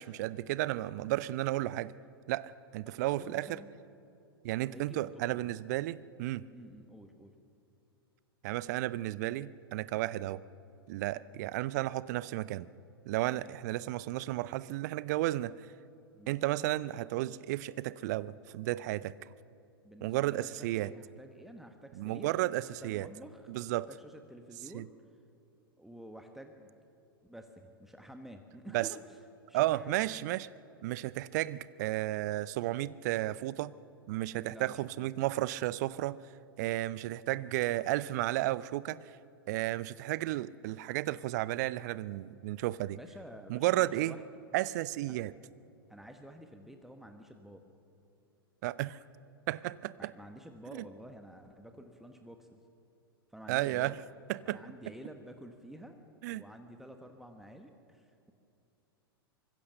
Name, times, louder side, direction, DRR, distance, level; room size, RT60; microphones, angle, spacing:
voice 1, 0.0-1.9 2.3-3.6 4.4-6.5 8.4-10.4 10.9-12.7 13.1-15.6 16.3-19.1 20.0-20.9 22.0-23.1 23.5-23.9 24.7-24.9 28.7-28.9 29.5-30.5 30.8-33.7 34.1-36.2 36.6-39.0 39.5-43.0 43.5-44.1 44.5-45.3 48.6-49.0 49.5-50.1 50.7-50.8 53.5-54.0 54.3-54.6 56.2-56.4, right 16 dB, 45° right, 19 dB, 0.6 m, -33 dB
voice 2, 2.9-3.7 4.7-5.4 6.5-7.3 13.4-13.5 16.1-16.4 19.8-22.3 22.6-24.9 25.8-26.8 27.2-29.2 29.5-30.1 34.5-35.1 42.9-44.2 45.1-45.2 45.9-47.6 50.0-52.6 53.3-54.0 54.4-56.0 56.3-58.3, equal, ahead, 5 dB, 1.3 m, -50 dB
25.0 x 21.5 x 6.7 m, 2.6 s
figure-of-eight pair, 95°, 13 cm